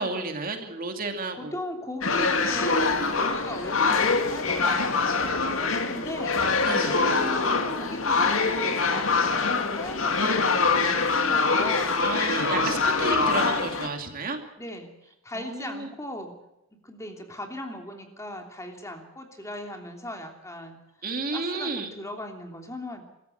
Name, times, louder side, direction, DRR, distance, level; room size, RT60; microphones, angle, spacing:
voice 1, 0.0-1.5 6.6-7.0 12.0-14.4 15.3-15.9 21.0-21.9, right 3 dB, 45° right, 5 dB, 2.5 m, -31 dB
voice 2, 1.4-6.3 6.8-12.0 13.1-13.5 14.6-14.9 15.2-16.3 16.8-20.8 21.3-23.1, left 1 dB, 15° left, 3 dB, 3.2 m, -38 dB
sound 1, 2.0-13.9, left 4 dB, 75° left, 2.3 m, -24 dB
25.5 x 14.5 x 8.0 m, 0.90 s
head